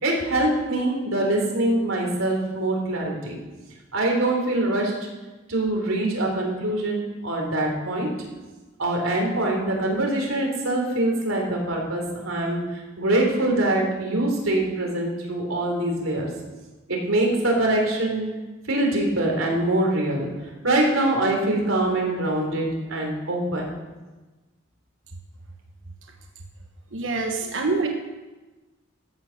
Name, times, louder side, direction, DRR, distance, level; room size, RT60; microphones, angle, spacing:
voice 1, 0.0-3.4 3.9-5.0 5.5-8.1 8.8-12.7 13.0-16.3 16.9-18.3 18.7-23.7, right 1 dB, 90° right, 0 dB, 3.7 m, -24 dB
voice 2, 26.9-27.9, right 3 dB, 65° right, 3 dB, 1.3 m, -25 dB
14.0 x 9.0 x 6.6 m, 1.2 s
head